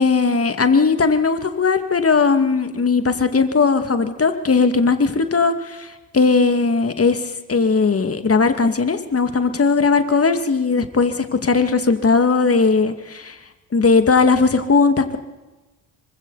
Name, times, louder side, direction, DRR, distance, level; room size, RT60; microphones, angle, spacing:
voice 1, 0.0-5.9 6.1-13.4 13.7-15.2, left 4 dB, 30° left, 8 dB, 2.3 m, -18 dB
26.5 x 24.0 x 4.2 m, 1.1 s
hypercardioid pair, 45°, 45 cm